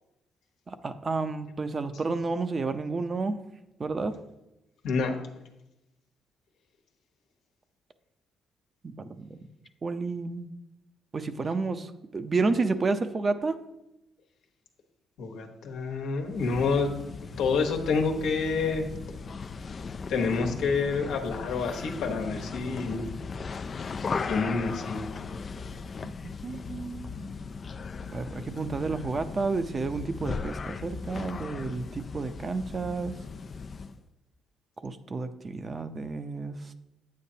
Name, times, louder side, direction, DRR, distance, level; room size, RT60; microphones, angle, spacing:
voice 1, 0.7-3.4 3.8-4.2 8.8-9.4 9.8-10.5 11.1-11.9 12.1-13.6 26.0-26.1 26.4-27.1 28.1-33.2 34.8-36.6, right 3 dB, 35° right, 10 dB, 0.6 m, -30 dB
voice 2, 15.2-16.9 17.4-18.9 20.1-23.1 24.1-25.1, left 4 dB, 85° left, 3 dB, 1.2 m, -28 dB
sound 1, 16.3-34.0, left 5 dB, 40° left, 0.3 m, -38 dB
8.8 x 8.4 x 2.8 m, 0.91 s
cardioid pair, 90°, 0 cm